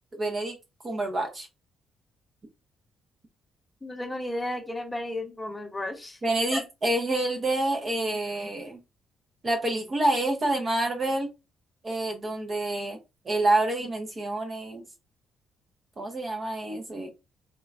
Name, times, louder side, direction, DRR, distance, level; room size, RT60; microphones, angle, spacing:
voice 1, 0.2-0.5 0.8-1.5 6.2-8.8 9.4-11.3 11.8-13.0 13.2-14.8 16.0-17.1, right 2 dB, 35° right, 0.6 m, -27 dB
voice 2, 3.8-6.2 6.5-6.6, left 1 dB, 15° left, 0.7 m, -33 dB
3.1 x 2.2 x 2.4 m
cardioid pair, 90°, 0 cm